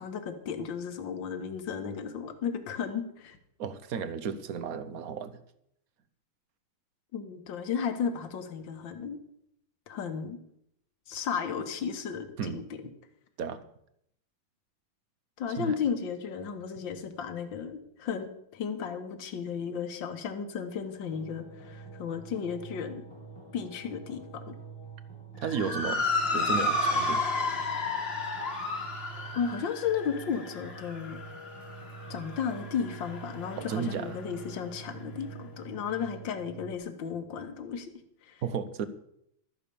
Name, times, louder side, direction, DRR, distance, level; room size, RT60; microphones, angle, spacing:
voice 1, 0.0-3.4 7.1-9.2 9.9-10.4 11.1-12.6 15.4-23.0 23.5-24.2 24.5-24.6 29.3-31.2 32.1-37.9 38.3-38.4, left 7 dB, 60° left, 8 dB, 2.0 m, -34 dB
voice 2, 3.6-5.4 12.4-12.6 13.4-13.6 15.6-15.8 25.4-27.3 33.6-34.2 38.4-38.9, right 6 dB, 55° right, 13 dB, 1.1 m, -34 dB
sound 1, 21.1-36.7, right 5 dB, 15° left, 1.3 m, -46 dB
Motor vehicle (road) / Siren, 25.4-34.0, left 2 dB, 30° left, 1.6 m, -32 dB
13.0 x 10.0 x 7.0 m, 0.73 s
omnidirectional pair, 2.4 m